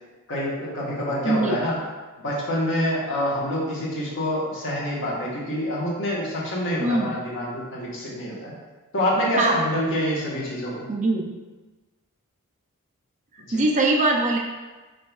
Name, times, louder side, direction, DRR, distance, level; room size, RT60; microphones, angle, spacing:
voice 1, 0.3-1.8 2.2-8.5 8.9-10.8 13.5-13.6, equal, 55° left, -5 dB, 1.3 m, -26 dB
voice 2, 1.2-1.6 6.8-7.2 9.4-9.6 10.9-11.3 13.5-14.4, right 2 dB, 35° right, 1 dB, 0.5 m, -22 dB
5.2 x 3.9 x 2.3 m, 1.2 s
head